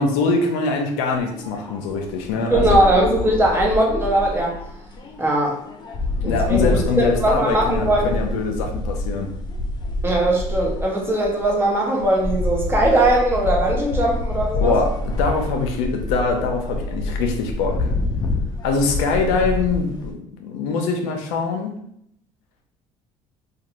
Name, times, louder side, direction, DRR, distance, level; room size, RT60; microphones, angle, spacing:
voice 1, 0.0-2.8 6.2-9.3 14.6-17.9 18.6-21.8, left 4 dB, 90° left, 3 dB, 0.5 m, -23 dB
sound 1, 1.1-20.1, left 2 dB, 35° left, 0.4 m, -27 dB
voice 2, 2.5-4.6 5.2-5.6 6.2-8.1 10.0-14.7, right 1 dB, 20° right, -1 dB, 0.8 m, -20 dB
2.5 x 2.2 x 2.9 m, 0.71 s
supercardioid pair, 100°, 13 cm